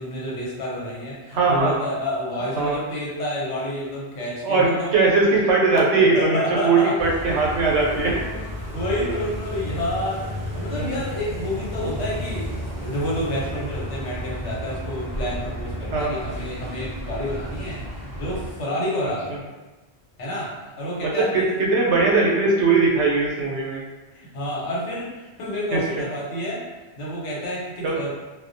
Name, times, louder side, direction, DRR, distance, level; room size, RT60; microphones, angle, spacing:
voice 1, 0.0-4.9 5.7-7.2 7.9-8.0 8.7-12.4 12.8-17.8 18.1-19.3 20.2-21.6 24.1-26.6 27.0-28.1, equal, 85° left, -5 dB, 1.1 m, -29 dB
voice 2, 1.3-1.8 2.6-2.8 4.4-8.2 9.0-9.1 10.8-10.9 15.9-16.2 21.0-23.8 25.7-26.0 27.8-28.0, right 3 dB, 75° right, -3 dB, 0.9 m, -20 dB
sound 1, 7.0-18.5, equal, 35° right, 0.4 m, -32 dB
2.2 x 2.1 x 2.5 m, 1.2 s
omnidirectional pair, 1.2 m